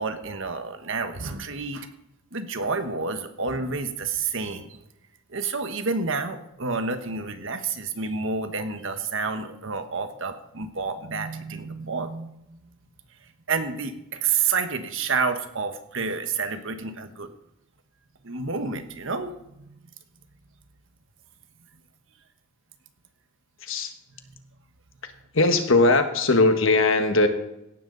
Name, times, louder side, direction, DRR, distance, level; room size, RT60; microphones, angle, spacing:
voice 1, 0.0-1.9 2.3-4.8 5.3-12.7 13.5-17.3 18.2-19.6 24.3-24.4, right 4 dB, 65° right, 8 dB, 1.4 m, -29 dB
voice 2, 23.6-23.9 25.3-27.3, left 2 dB, 65° left, 7 dB, 1.5 m, -19 dB
17.0 x 12.0 x 4.1 m, 0.85 s
head